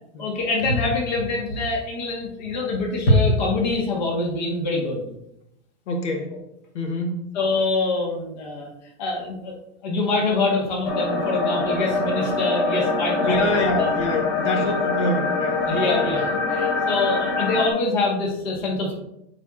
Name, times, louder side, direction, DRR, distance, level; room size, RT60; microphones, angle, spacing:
voice 1, 0.2-5.0 7.3-8.7 9.0-9.5 9.8-13.9 14.5-14.7 15.6-18.9, left 2 dB, 40° left, -1 dB, 1.4 m, -24 dB
voice 2, 5.9-6.3 6.7-7.2 13.2-16.3, left 1 dB, 80° left, 3 dB, 1.1 m, -26 dB
sound 1, 10.9-17.7, left 3 dB, 25° left, 0.4 m, -24 dB
8.7 x 4.5 x 2.4 m, 0.84 s
supercardioid pair, 175°, 35 cm